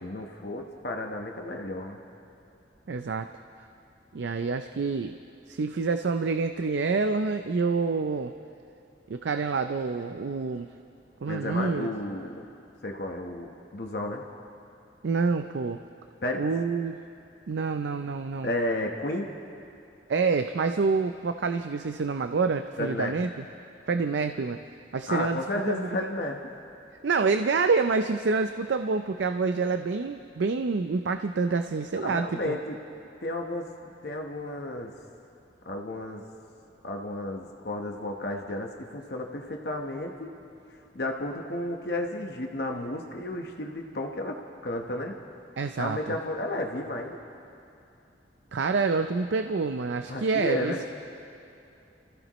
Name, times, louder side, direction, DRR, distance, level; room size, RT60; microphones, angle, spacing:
voice 1, 0.0-2.0 11.3-12.4 12.8-14.2 16.2-16.4 18.4-19.3 22.8-23.1 25.1-26.5 32.0-32.8 33.2-33.7 34.0-34.9 35.6-36.2 36.8-40.3 40.9-45.1 45.8-47.2 50.1-50.8, left 1 dB, 60° left, 2 dB, 1.1 m, -32 dB
voice 2, 2.9-3.3 4.1-5.1 5.5-8.3 9.1-10.7 11.2-11.9 15.0-15.8 16.4-17.0 17.5-18.5 20.1-23.4 23.9-24.6 24.9-26.1 27.0-32.6 45.6-46.2 48.5-50.7, right 4 dB, 75° right, 8 dB, 0.5 m, -27 dB
29.5 x 15.0 x 3.1 m, 2.6 s
head